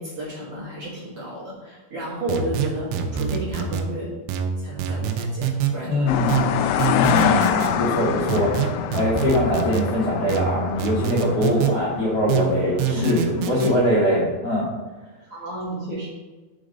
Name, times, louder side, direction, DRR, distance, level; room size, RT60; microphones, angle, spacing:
voice 1, 0.0-4.1 4.6-6.4 12.9-13.5 15.3-16.1, right 1 dB, 55° right, -7 dB, 1.6 m, -32 dB
sound 1, 2.3-3.9 4.3-5.7 6.3-7.7 8.3-9.9 10.3-11.7 12.3-13.7, right 8 dB, 85° right, 2.9 m, -25 dB
voice 2, 5.8-6.4 6.9-8.5 8.9-14.7, left 1 dB, 60° left, -8 dB, 1.5 m, -22 dB
sound 2, 6.1-14.0, left 9 dB, 85° left, 2.5 m, -26 dB
6.1 x 5.0 x 5.1 m, 1.2 s
omnidirectional pair, 5.1 m